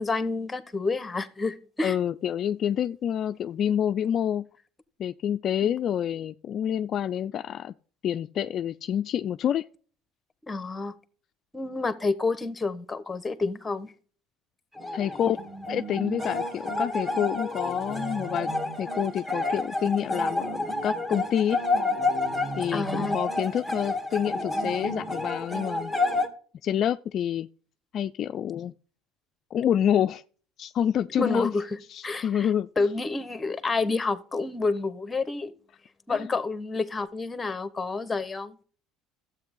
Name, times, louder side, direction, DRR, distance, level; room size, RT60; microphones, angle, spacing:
voice 1, 0.0-2.0 5.6-5.7 10.5-10.9 11.5-13.9 22.7-23.2 31.2-31.6 32.0-32.5 32.8-35.5 36.1-38.6, left 3 dB, 15° left, 1.2 m, -29 dB
voice 2, 1.8-4.5 5.0-7.7 8.0-9.6 14.9-15.4 15.7-18.5 18.8-21.6 22.6-25.9 26.6-27.5 27.9-28.7 29.5-30.2 30.6-31.5 31.9-32.9 36.1-36.3, left 9 dB, 50° left, 0.4 m, -28 dB
sound 1, 14.8-26.3, left 2 dB, 10° right, 2.0 m, -29 dB
12.5 x 8.0 x 3.8 m
supercardioid pair, 105°, 0 cm